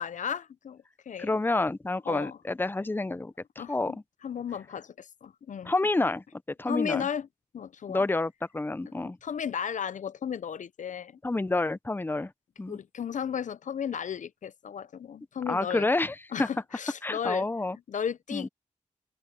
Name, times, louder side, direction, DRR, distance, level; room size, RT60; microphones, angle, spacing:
voice 1, 0.0-1.3 2.1-2.4 3.6-5.7 6.7-7.3 7.5-8.1 9.2-11.2 12.7-15.9 16.3-17.5 17.9-18.5, left 8 dB, 75° left, 0.6 m, -34 dB
voice 2, 1.2-4.0 5.6-7.1 7.9-9.2 11.2-12.3 12.6-12.8 15.5-16.5 17.0-17.8 18.3-18.5, left 2 dB, 15° left, 0.6 m, -29 dB
wide cardioid pair, 85°, 13 cm